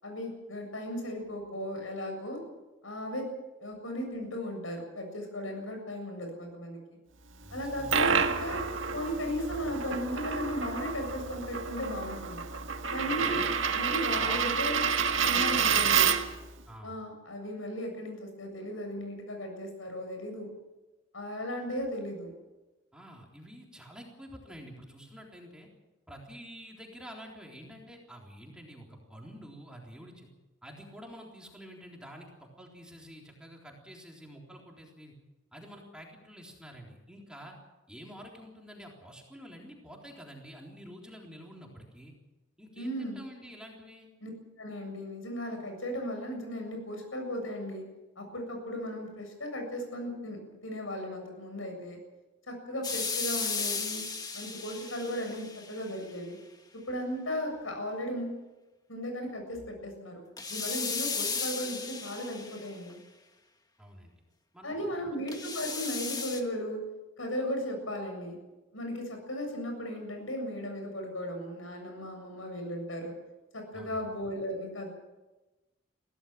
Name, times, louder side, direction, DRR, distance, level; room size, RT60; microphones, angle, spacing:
voice 1, 0.0-2.4 2.8-3.3 3.6-6.8 7.5-8.6 8.9-12.4 12.9-13.4 13.7-14.8 15.2-16.2 16.8-20.5 21.1-22.3 42.8-43.2 44.2-44.3 44.6-47.8 48.2-50.4 50.6-52.0 52.5-54.0 54.3-56.4 56.7-58.4 58.9-60.2 60.5-63.0 64.6-66.8 67.2-68.4 68.7-73.1 73.5-74.9, equal, 90° left, 4 dB, 7.5 m, -36 dB
voice 2, 7.4-8.3 13.0-13.5 14.1-14.6 15.5-15.9 16.7-16.9 22.9-25.7 26.1-30.3 30.6-35.1 35.5-37.6 37.9-42.1 42.6-44.1 63.8-64.1 64.5-64.9 73.7-74.0, equal, 5° right, -1 dB, 3.7 m, -48 dB
Coin (dropping), 7.6-16.4, right 6 dB, 80° right, 1.6 m, -29 dB
sound 1, 52.8-55.9 60.4-62.9 65.3-66.4, left 4 dB, 20° left, 1.7 m, -35 dB
23.5 x 16.5 x 7.5 m, 1.1 s
head